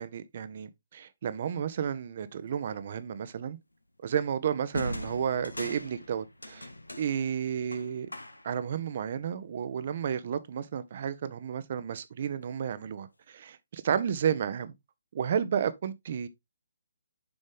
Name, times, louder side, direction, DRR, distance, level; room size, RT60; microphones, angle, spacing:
voice 1, 0.0-3.6 4.0-6.7 7.0-8.1 8.4-14.7 15.1-16.3, right 8 dB, 40° right, 0.8 m, -32 dB
sound 1, 2.7-2.9 4.7-8.7, left 1 dB, 80° left, 1.0 m, -40 dB
7.0 x 5.3 x 3.5 m
figure-of-eight pair, 135°, 0 cm